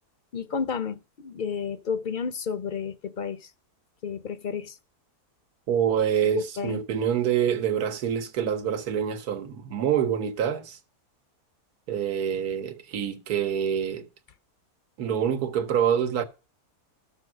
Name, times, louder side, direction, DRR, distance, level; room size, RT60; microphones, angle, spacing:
voice 1, 0.3-3.5 4.0-4.8 6.2-6.8, left 6 dB, 45° left, 0.7 m, -31 dB
voice 2, 5.7-10.8 11.9-14.1 15.0-16.2, right 8 dB, 75° right, 1.6 m, -26 dB
12.5 x 6.7 x 6.0 m
omnidirectional pair, 1.6 m